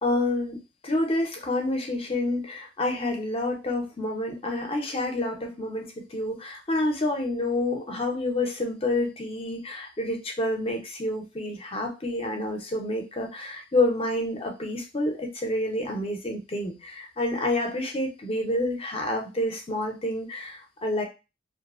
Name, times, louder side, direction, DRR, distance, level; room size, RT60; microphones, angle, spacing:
voice 1, 0.0-21.0, left 1 dB, 30° left, 2 dB, 0.6 m, -28 dB
2.6 x 2.0 x 2.4 m, 0.28 s
head